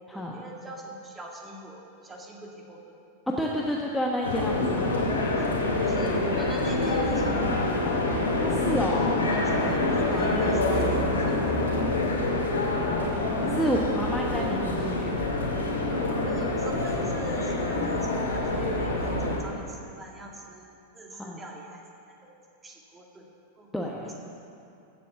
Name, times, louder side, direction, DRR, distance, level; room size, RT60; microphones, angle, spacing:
voice 1, 0.0-2.8 5.3-5.5 5.8-7.5 8.8-12.1 15.9-21.8 22.2-23.3 23.6-23.7 24.0-24.1, right 1 dB, 15° right, -1 dB, 2.3 m, -42 dB
voice 2, 3.3-5.0 8.3-9.3 12.8-15.2 21.1-21.4 23.7-24.1, equal, 5° left, -2 dB, 1.2 m, -30 dB
sound 1, 4.2-19.4, left 2 dB, 70° left, 2.6 m, -26 dB
15.0 x 8.7 x 7.0 m, 2.6 s
figure-of-eight pair, 90°, 0 cm